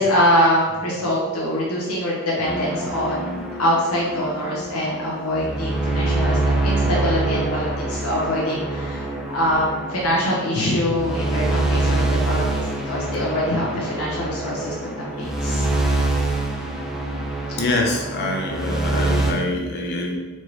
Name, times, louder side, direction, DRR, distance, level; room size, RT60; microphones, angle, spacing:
voice 1, 0.0-6.4 6.6-12.4 12.8-15.6, equal, 85° left, -5 dB, 1.0 m, -23 dB
sound 1, 2.5-19.3, right 2 dB, ahead, 0.3 m, -25 dB
voice 2, 17.6-20.2, left 2 dB, 50° left, 1 dB, 0.7 m, -25 dB
4.4 x 3.0 x 3.2 m, 1.3 s
head